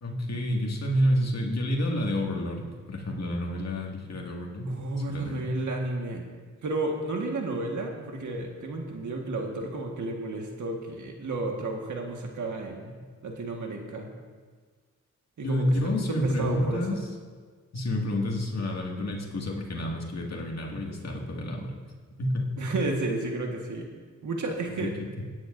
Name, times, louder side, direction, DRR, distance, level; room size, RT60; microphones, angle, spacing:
voice 1, 0.0-4.8 5.1-5.5 15.4-17.0 17.7-21.7 22.2-22.5 24.8-25.1, equal, 60° left, -1 dB, 2.1 m, -29 dB
voice 2, 4.7-6.2 6.6-12.9 13.2-14.1 15.4-15.8 16.1-17.0 22.6-23.9 24.2-24.9, right 2 dB, 75° right, 1 dB, 1.6 m, -32 dB
17.5 x 9.6 x 2.6 m, 1.5 s
cardioid pair, 55°, 30 cm